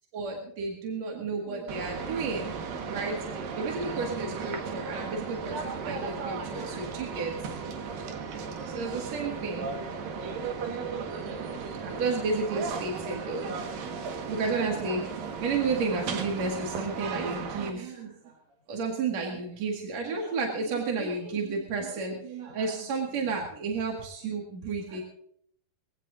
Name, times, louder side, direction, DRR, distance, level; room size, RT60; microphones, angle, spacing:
voice 1, 0.1-2.6 2.8-7.5 8.7-9.8 11.4-13.6 14.3-15.1 15.3-18.3 18.7-25.0, right 4 dB, 55° right, -1 dB, 2.9 m, -32 dB
sound 1, 1.7-17.7, right 5 dB, 75° right, 3.2 m, -35 dB
23.0 x 16.5 x 2.6 m, 0.67 s
omnidirectional pair, 4.1 m